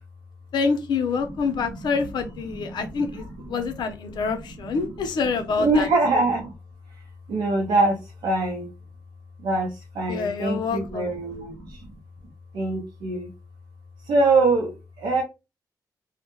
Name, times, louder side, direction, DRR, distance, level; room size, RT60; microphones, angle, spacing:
voice 1, 0.5-5.9 10.1-11.1, left 5 dB, 75° left, 6 dB, 0.5 m, -26 dB
voice 2, 2.5-3.3 3.7-3.8 4.1-4.4 4.6-4.9 5.6-6.5 7.3-8.7 9.4-11.9 12.5-13.3 14.0-15.2, right 2 dB, 90° right, -1 dB, 0.6 m, -24 dB
2.2 x 2.0 x 2.9 m, 0.26 s
wide cardioid pair, 125°, 7 cm